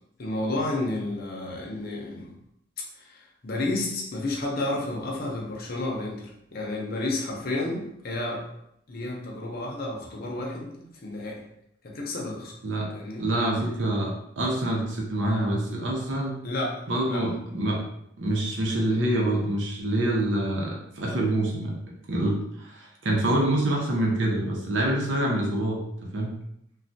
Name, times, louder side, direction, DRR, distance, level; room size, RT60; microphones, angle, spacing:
voice 1, 0.2-2.3 3.0-8.4 8.9-10.7 11.0-11.4 11.8-12.5 12.9-13.2 16.4-16.8 17.1-17.2, left 2 dB, 55° left, -1 dB, 0.7 m, -31 dB
voice 2, 13.2-16.3 16.9-17.8 18.2-21.7 22.1-26.3, right 1 dB, 85° right, -1 dB, 0.7 m, -26 dB
3.2 x 2.3 x 2.6 m, 0.77 s
head